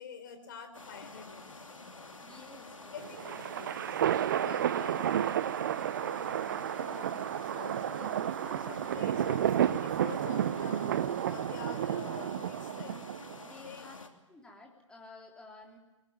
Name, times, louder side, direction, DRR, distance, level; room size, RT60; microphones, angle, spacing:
voice 1, 0.0-1.7 2.9-4.0 4.3-5.1 5.6-10.9 11.3-13.0 13.6-13.9, left 6 dB, 40° left, 7 dB, 4.6 m, -48 dB
sound 1, 0.7-14.1, left 3 dB, 75° left, 2.9 m, -49 dB
voice 2, 2.2-3.4 13.4-14.0 14.3-15.8, left 3 dB, 5° left, 0 dB, 3.6 m, -52 dB
sound 2, 3.0-13.4, right 10 dB, 40° right, 0.7 m, -31 dB
23.0 x 19.0 x 9.0 m, 1.1 s
figure-of-eight pair, 130°, 17 cm